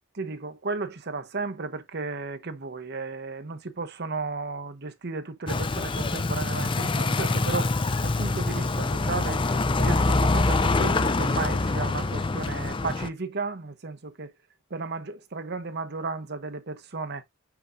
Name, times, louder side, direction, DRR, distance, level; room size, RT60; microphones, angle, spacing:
voice 1, 0.1-7.7 8.0-14.3 14.7-17.2, right 3 dB, 50° right, 0.9 m, -34 dB
sound 1, 5.5-13.1, left 3 dB, 25° left, 0.5 m, -25 dB
7.0 x 5.9 x 2.6 m
head